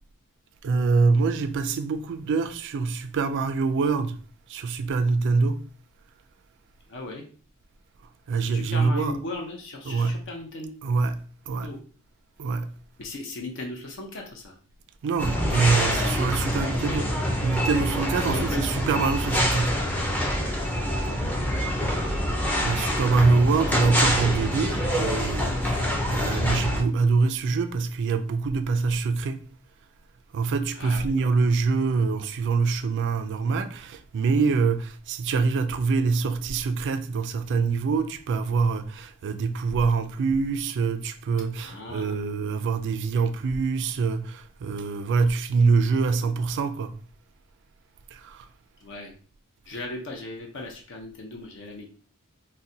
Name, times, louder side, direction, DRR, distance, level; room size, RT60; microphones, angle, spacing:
voice 1, 0.6-4.2 4.5-5.6 8.3-9.2 9.8-10.2 10.8-11.2 11.5-11.7 12.4-12.7 15.0-17.1 17.4-19.8 22.6-29.4 30.3-47.0 48.1-48.5, right 4 dB, 55° right, 0.3 m, -25 dB
voice 2, 6.9-7.2 8.4-10.7 11.6-11.8 13.0-14.6 18.1-18.6 20.9-21.2 23.0-23.2 30.7-31.3 41.6-42.3 48.8-49.1 49.7-51.9, left 2 dB, 60° left, 0.6 m, -37 dB
sound 1, 15.2-26.8, equal, 10° left, 0.5 m, -26 dB
3.8 x 2.1 x 2.7 m
head